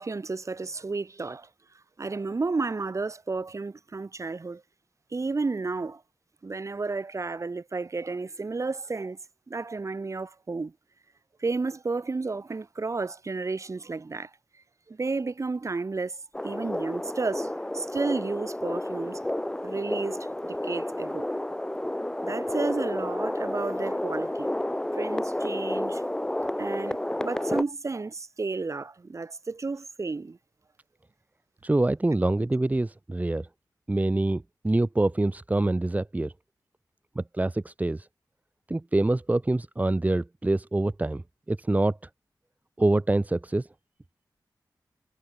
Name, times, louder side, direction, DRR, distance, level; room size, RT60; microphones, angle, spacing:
voice 1, 0.0-1.5 2.0-4.6 5.1-6.0 6.4-9.2 9.5-10.7 11.4-14.3 14.9-19.2 19.6-20.2 20.4-21.3 22.2-24.5 24.9-30.4, right 3 dB, 45° right, 4.6 m, -32 dB
sound 1, 16.3-27.6, left 1 dB, 10° left, 0.7 m, -31 dB
voice 2, 31.6-33.5 33.9-36.3 37.1-38.1 38.7-41.2 41.5-42.0 42.8-43.7, right 2 dB, 20° right, 1.5 m, -25 dB
wide cardioid pair, 100°, 7 cm